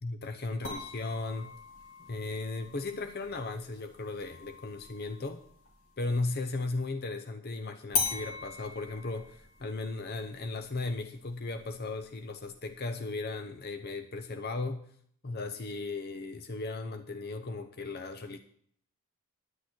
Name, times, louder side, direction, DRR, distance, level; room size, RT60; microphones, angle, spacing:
voice 1, 0.0-1.5 2.1-5.4 6.0-14.8 15.2-18.4, left 3 dB, 45° left, 6 dB, 0.8 m, -36 dB
sound 1, 0.6-6.2 7.9-12.9, left 4 dB, 65° left, 3.0 m, -40 dB
10.5 x 10.0 x 6.1 m, 0.63 s
head